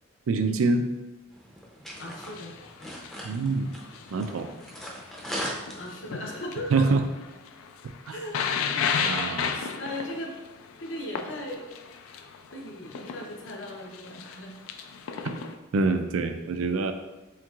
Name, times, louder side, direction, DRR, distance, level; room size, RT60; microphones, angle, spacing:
voice 1, 0.3-0.8 3.2-3.7 4.1-4.5 6.7-7.0 8.1-8.2 9.0-9.5 15.2-15.3 15.7-16.9, right 3 dB, 85° right, 7 dB, 0.4 m, -25 dB
sound 1, 1.3-6.3, equal, ahead, 0.5 m, -39 dB
sound 2, 2.0-15.6, left 6 dB, 85° left, 0.3 m, -34 dB
voice 2, 2.0-2.5 5.7-6.9 8.1-8.5 8.7-9.0 9.8-10.4 10.8-11.7 12.0-12.2 12.5-14.5, left 1 dB, 60° left, 1 dB, 0.7 m, -37 dB
4.5 x 3.6 x 2.4 m, 1.1 s
head